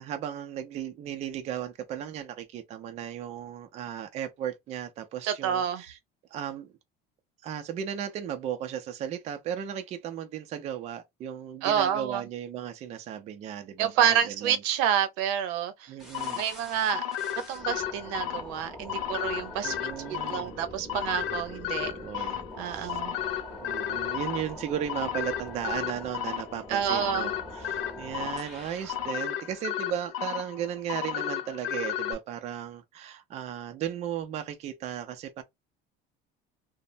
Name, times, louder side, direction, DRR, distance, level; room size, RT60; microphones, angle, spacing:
voice 1, 0.0-6.0 6.3-6.7 7.4-14.6 15.9-16.4 19.6-20.6 21.7-22.4 22.7-23.0 23.6-35.4, right 9 dB, 30° right, 0.4 m, -36 dB
voice 2, 5.3-5.8 11.6-12.2 13.8-15.9 16.3-17.0 17.5-19.8 20.1-22.3 22.6-23.1 26.7-27.3, right 9 dB, 85° right, 0.7 m, -28 dB
sound 1, 16.0-29.1, left 1 dB, ahead, 0.8 m, -44 dB
sound 2, 16.1-32.1, left 11 dB, 90° left, 0.7 m, -34 dB
3.1 x 2.0 x 2.5 m
cardioid pair, 175°, 21 cm